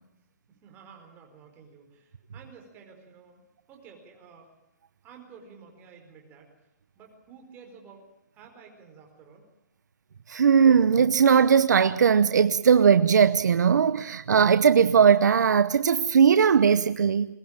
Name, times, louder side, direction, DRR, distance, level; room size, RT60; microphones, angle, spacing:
voice 1, 0.6-3.4 3.7-4.5 5.0-6.5 6.9-8.1 8.3-9.4, right 6 dB, 20° right, 4.8 m, -51 dB
voice 2, 10.3-17.3, right 7 dB, 80° right, 0.9 m, -19 dB
22.0 x 18.0 x 8.9 m
hypercardioid pair, 160°, 9 cm